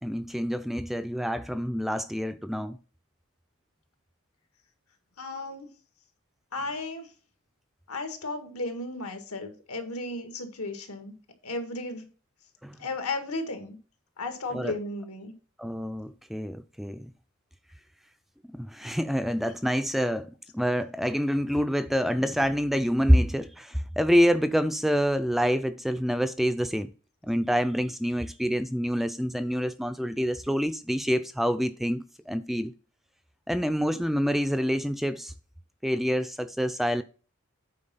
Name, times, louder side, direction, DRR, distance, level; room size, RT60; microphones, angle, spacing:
voice 1, 0.0-2.8 12.6-12.8 14.5-14.8 15.6-17.1 18.5-26.9 27.2-32.7 33.5-35.3 35.8-37.0, equal, ahead, 0.3 m, -27 dB
voice 2, 5.2-5.7 6.5-7.1 7.9-11.1 11.4-12.1 12.8-13.8 14.2-15.3, left 2 dB, 85° left, 1.8 m, -34 dB
8.6 x 4.6 x 5.5 m
head